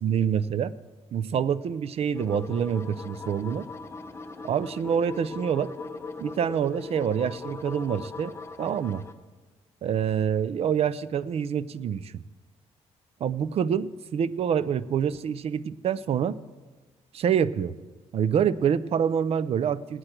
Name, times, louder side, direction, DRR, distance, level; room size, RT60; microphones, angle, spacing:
voice 1, 0.0-0.7 1.1-3.7 4.4-5.7 6.2-9.0 9.8-12.1 13.2-16.4 17.1-17.7 18.1-20.0, right 8 dB, 55° right, 17 dB, 0.5 m, -26 dB
sound 1, 2.1-9.1, left 4 dB, 20° left, 0.8 m, -39 dB
17.5 x 9.7 x 4.4 m, 1.3 s
cardioid pair, 120°, 12 cm